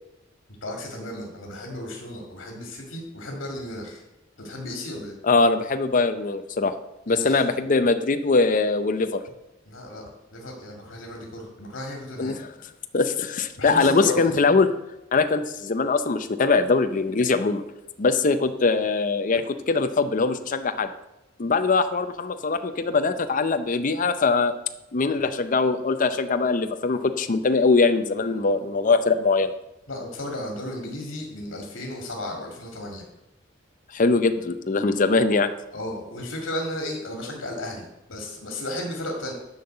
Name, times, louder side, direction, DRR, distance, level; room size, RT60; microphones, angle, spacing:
voice 1, 0.6-4.0 4.4-5.1 7.1-7.5 9.7-10.0 10.3-12.4 13.6-14.4 29.9-33.1 35.7-37.8 38.1-39.3, left 1 dB, 80° left, 1 dB, 2.1 m, -34 dB
voice 2, 5.2-6.7 7.1-9.2 12.2-12.5 12.9-14.7 15.1-17.6 18.0-20.9 21.4-24.5 24.9-29.5 33.9-35.5, left 4 dB, 45° left, 9 dB, 0.6 m, -22 dB
11.0 x 5.5 x 7.8 m, 0.92 s
head